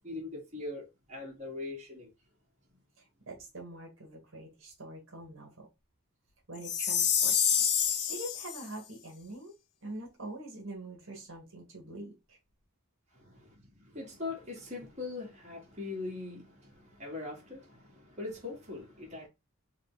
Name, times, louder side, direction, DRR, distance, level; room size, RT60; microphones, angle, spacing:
voice 1, 0.0-2.1 13.1-19.3, left 3 dB, 30° right, 1.6 m, -41 dB
voice 2, 3.0-5.7 6.5-7.4 7.9-9.5 9.8-12.4, right 1 dB, 60° right, 1.2 m, -44 dB
Chime, 6.6-8.6, left 8 dB, 85° left, 0.7 m, -27 dB
3.8 x 2.3 x 3.6 m
head